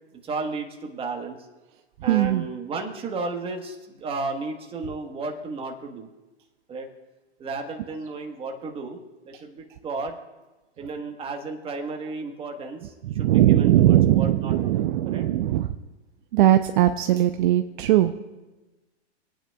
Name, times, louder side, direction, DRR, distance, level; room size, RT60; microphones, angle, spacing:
voice 1, 0.2-1.4 2.0-6.1 6.7-6.9 7.4-9.0 9.2-10.2 10.8-15.2, right 3 dB, 15° right, 3 dB, 1.2 m, -33 dB
voice 2, 2.1-2.5 9.3-9.4 13.0-15.8 16.3-18.1, right 13 dB, 50° right, 8 dB, 0.5 m, -20 dB
26.0 x 9.0 x 2.3 m, 1.1 s
hypercardioid pair, 125°, 34 cm